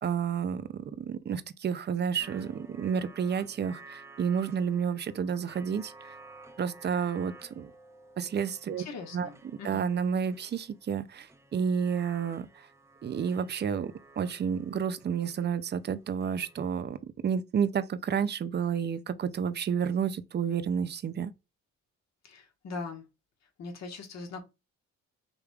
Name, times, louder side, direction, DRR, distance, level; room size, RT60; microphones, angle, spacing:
voice 1, 0.0-5.9 6.6-7.7 8.2-8.8 9.1-9.3 9.6-12.7 13.0-21.3, right 7 dB, 35° right, 0.5 m, -30 dB
sound 1, 2.2-16.8, right 3 dB, 10° right, 0.8 m, -53 dB
voice 2, 8.8-9.8 22.2-23.0 23.6-24.4, left 4 dB, 60° left, 1.4 m, -41 dB
5.1 x 3.2 x 2.3 m
cardioid pair, 90°, 30 cm